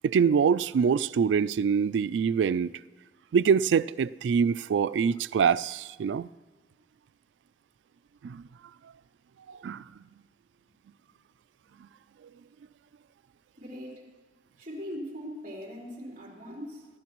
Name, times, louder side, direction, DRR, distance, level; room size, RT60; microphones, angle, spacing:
voice 1, 0.0-2.7 3.3-6.3 8.2-8.4 9.5-9.8, right 6 dB, 85° right, 0.3 m, -24 dB
voice 2, 13.6-14.1 14.6-16.9, equal, 50° right, 3.9 m, -40 dB
24.0 x 11.5 x 3.0 m
head